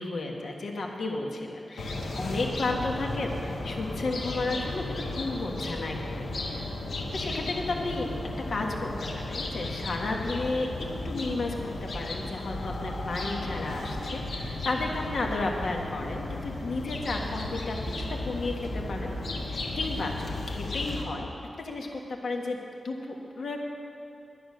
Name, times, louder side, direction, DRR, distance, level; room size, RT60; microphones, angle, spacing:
voice 1, 0.0-6.6 7.1-8.1 8.5-19.1 19.4-21.3 21.6-22.6 22.8-23.6, left 2 dB, 70° left, 1 dB, 1.4 m, -33 dB
sound 1, 1.8-21.0, left 2 dB, 90° left, 1.4 m, -34 dB
11.0 x 10.0 x 6.5 m, 2.7 s
wide cardioid pair, 150°, 0 cm